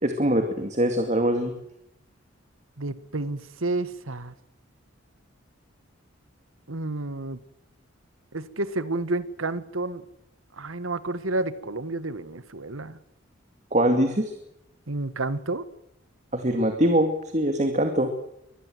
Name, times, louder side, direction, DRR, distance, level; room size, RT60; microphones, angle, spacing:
voice 1, 0.0-1.5 13.7-14.3 16.3-18.1, right 1 dB, 35° right, 6 dB, 2.4 m, -23 dB
voice 2, 2.8-4.4 6.7-7.4 8.3-10.0 10.6-13.0 14.9-15.6, right 2 dB, 80° right, 14 dB, 1.6 m, -30 dB
24.5 x 20.5 x 7.9 m, 0.80 s
head